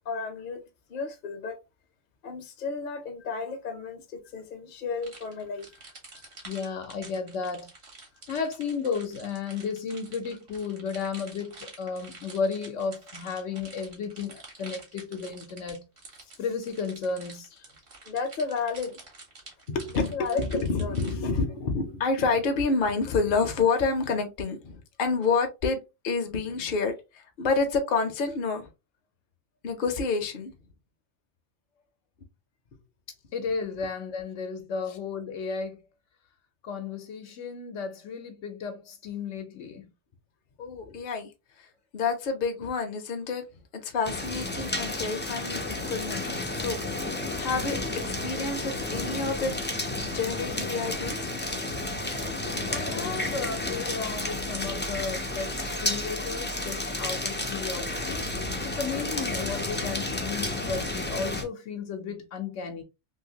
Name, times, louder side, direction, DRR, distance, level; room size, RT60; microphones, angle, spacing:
voice 1, 0.1-0.6 0.9-1.6 2.2-5.7 18.1-19.0 19.7-25.8 26.0-28.7 29.6-30.5 34.9-35.0 40.6-41.3 41.6-41.7 41.9-43.5 43.7-49.5 50.1-51.3, left 4 dB, 50° left, 0.8 m, -29 dB
sound 1, 5.0-21.2, right 3 dB, 60° right, 1.4 m, -48 dB
voice 2, 6.4-7.7 8.3-15.8 16.4-17.5 33.3-35.8 36.6-39.8 52.7-58.2 58.6-62.8, left 5 dB, 75° left, 1.1 m, -34 dB
sound 2, 44.0-61.4, left 2 dB, 15° left, 0.3 m, -31 dB
3.2 x 2.7 x 2.8 m
omnidirectional pair, 1.3 m